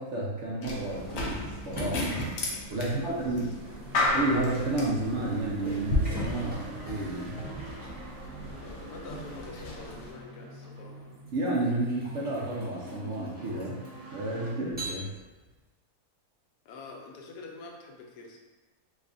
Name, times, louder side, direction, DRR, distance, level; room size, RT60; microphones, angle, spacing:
voice 1, 0.0-2.2 2.7-3.5 4.1-7.5 11.3-13.8 14.1-15.1, right 2 dB, 60° right, -5 dB, 0.8 m, -31 dB
sound 1, 0.6-10.1, left 2 dB, 60° left, 0.8 m, -34 dB
sound 2, 1.0-8.6 9.9-10.1 10.8-14.2 14.7-15.6, right 1 dB, 10° right, 0.6 m, -43 dB
sound 3, 1.4-14.5, right 3 dB, 85° right, 1.3 m, -46 dB
voice 2, 2.7-3.5 8.6-11.0 16.6-18.4, left 4 dB, 90° left, 0 dB, 1.2 m, -46 dB
3.2 x 2.3 x 3.7 m, 1.2 s
omnidirectional pair, 1.6 m